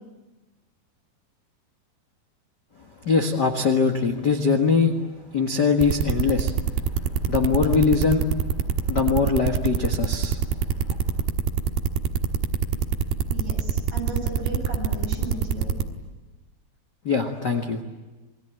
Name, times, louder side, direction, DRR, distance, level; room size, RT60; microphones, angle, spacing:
voice 1, 3.0-4.9 5.3-6.5 7.3-8.2 8.9-10.4 17.0-17.8, left 5 dB, 65° left, 4 dB, 1.0 m, -22 dB
sound 1, 5.8-15.8, right 8 dB, 85° right, 3.4 m, -24 dB
voice 2, 13.3-15.7, right 2 dB, 35° right, 1 dB, 8.9 m, -35 dB
28.0 x 20.5 x 9.1 m, 1.2 s
omnidirectional pair, 4.6 m